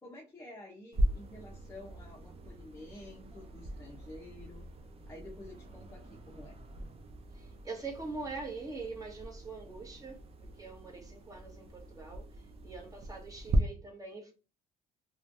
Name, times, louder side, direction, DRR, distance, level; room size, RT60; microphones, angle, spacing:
voice 1, 0.0-4.7 5.0-6.6, left 1 dB, 15° left, 0.6 m, -50 dB
sound 1, 0.9-13.6, right 1 dB, 35° right, 0.5 m, -39 dB
voice 2, 7.3-12.2 12.6-14.3, right 3 dB, 20° right, 1.1 m, -43 dB
3.1 x 2.2 x 2.5 m
cardioid pair, 110°, 17 cm